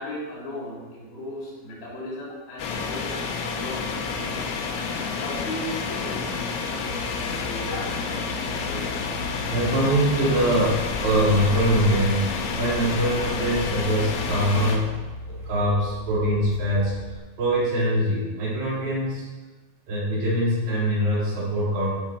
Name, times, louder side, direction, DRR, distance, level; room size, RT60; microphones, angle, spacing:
voice 1, 0.0-3.9 4.1-4.5 5.1-7.9 8.2-9.1, left 1 dB, 65° left, -6 dB, 6.4 m, -37 dB
sound 1, 2.6-14.8, left 5 dB, 85° left, 3.5 m, -30 dB
sound 2, 6.9-17.2, equal, 30° left, 3.0 m, -37 dB
voice 2, 9.5-15.0 15.3-17.0 17.4-19.3 19.9-21.9, equal, 80° right, -8 dB, 6.7 m, -23 dB
15.5 x 6.2 x 4.7 m, 1.3 s
omnidirectional pair, 5.2 m